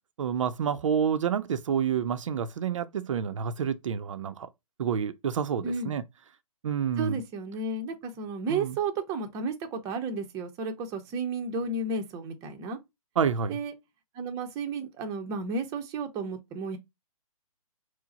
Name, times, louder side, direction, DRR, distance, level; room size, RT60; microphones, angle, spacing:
voice 1, 0.2-4.5 4.8-6.0 6.6-7.2 8.5-8.8 13.2-13.6, right 7 dB, 60° right, 0.5 m, -28 dB
voice 2, 7.0-12.8 13.5-13.7 14.1-16.8, right 3 dB, 20° right, 0.6 m, -32 dB
4.6 x 2.0 x 3.9 m
hypercardioid pair, 140°, 19 cm